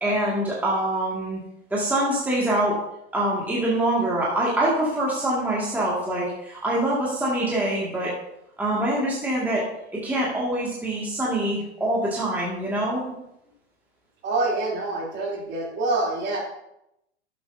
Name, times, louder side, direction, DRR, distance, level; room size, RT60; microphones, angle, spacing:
voice 1, 0.0-1.4 1.7-2.8 3.1-8.1 8.6-9.6 9.9-13.0, right 1 dB, 5° right, -6 dB, 2.1 m, -24 dB
voice 2, 14.2-16.4, right 2 dB, 30° right, -3 dB, 3.2 m, -26 dB
11.5 x 7.9 x 2.7 m, 0.82 s
hypercardioid pair, 125°, 35 cm